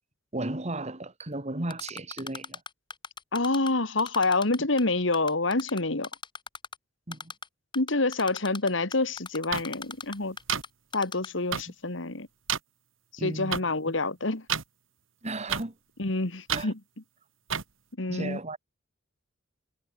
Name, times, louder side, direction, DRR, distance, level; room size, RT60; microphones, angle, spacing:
voice 1, 0.3-2.6 7.1-7.3 13.2-13.6 15.2-15.8 16.5-16.7 18.1-18.6, right 2 dB, 35° right, 2.1 m, -34 dB
Typing, 1.7-3.7 4.0-4.8 5.1-6.7 7.1-7.5 7.7-10.7 10.9-11.3, left 5 dB, 25° left, 6.1 m, -38 dB
voice 2, 3.3-6.1 7.7-10.4 10.9-12.3 13.1-14.4 16.0-16.8 18.0-18.4, left 3 dB, 70° left, 2.0 m, -27 dB
sound 1, 9.5-9.6 10.5-10.6 11.5-11.6 12.5-12.6 13.5-13.6 14.5-14.6 15.5-15.6 16.5-16.6 17.5-17.6, right 8 dB, 80° right, 2.0 m, -28 dB
head